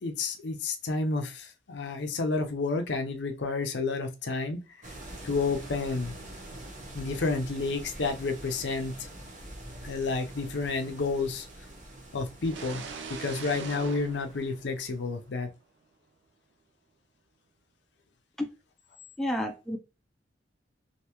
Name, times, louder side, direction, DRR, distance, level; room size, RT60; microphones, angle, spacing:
voice 1, 0.0-4.6 5.2-6.2 6.9-8.9 9.8-11.5 12.1-12.8 13.2-15.5, left 3 dB, 70° left, 5 dB, 0.6 m, -30 dB
sound 1, 4.8-15.2, right 1 dB, 45° right, 1.0 m, -45 dB
sound 2, 12.4-15.2, right 5 dB, 80° right, 0.5 m, -42 dB
voice 2, 19.2-19.8, left 1 dB, ahead, 3 dB, 0.5 m, -30 dB
3.3 x 2.6 x 2.9 m, 0.28 s
head